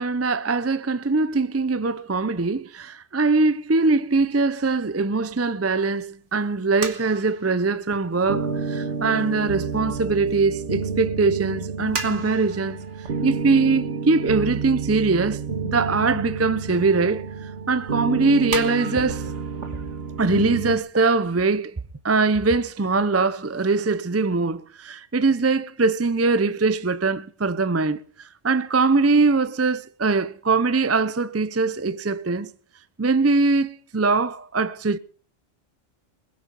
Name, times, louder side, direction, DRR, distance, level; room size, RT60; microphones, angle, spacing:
voice 1, 0.0-12.8 13.2-15.4 15.7-19.3 20.2-21.7 22.0-32.5 33.0-35.0, right 3 dB, 20° right, 0.4 m, -22 dB
sound 1, 3.7-11.3 11.6-14.8 15.3-15.4 16.2-16.7 16.9-17.0 17.5-17.6 18.1-18.2 18.5-21.5 21.8-21.9 22.4-22.5 22.7-23.6, right 4 dB, 70° right, 2.0 m, -39 dB
sound 2, 8.2-20.8, right 5 dB, 55° right, 1.5 m, -30 dB
20.5 x 10.5 x 5.3 m
omnidirectional pair, 1.3 m